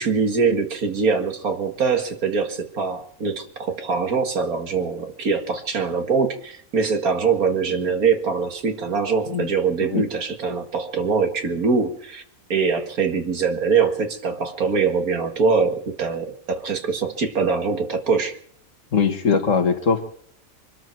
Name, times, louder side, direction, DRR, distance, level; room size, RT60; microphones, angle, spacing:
voice 1, 0.0-12.2 12.5-18.4, right 5 dB, 75° right, 6 dB, 2.3 m, -23 dB
voice 2, 18.9-20.0, left 5 dB, 60° left, 7 dB, 1.9 m, -21 dB
24.0 x 13.0 x 4.6 m, 0.64 s
omnidirectional pair, 1.5 m